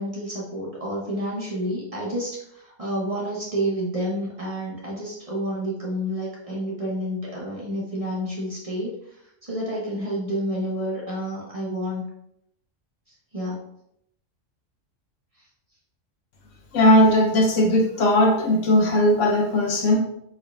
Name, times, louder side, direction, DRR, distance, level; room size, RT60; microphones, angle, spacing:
voice 1, 0.0-12.0 13.3-13.6, equal, 30° right, -5 dB, 0.9 m, -29 dB
voice 2, 16.7-20.0, left 1 dB, 80° left, 0 dB, 1.2 m, -18 dB
4.3 x 3.4 x 2.4 m, 0.77 s
omnidirectional pair, 1.3 m